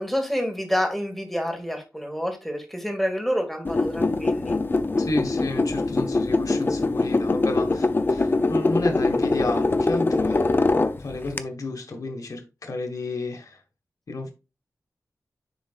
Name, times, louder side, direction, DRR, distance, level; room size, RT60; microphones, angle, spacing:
voice 1, 0.0-4.6, equal, 5° left, 2.2 m, -28 dB
sound 1, 3.6-11.4, left 3 dB, 35° left, 0.5 m, -23 dB
voice 2, 5.0-13.6 14.1-14.3, left 2 dB, 70° left, 1.5 m, -32 dB
9.9 x 3.9 x 2.4 m
wide cardioid pair, 85°, 6 cm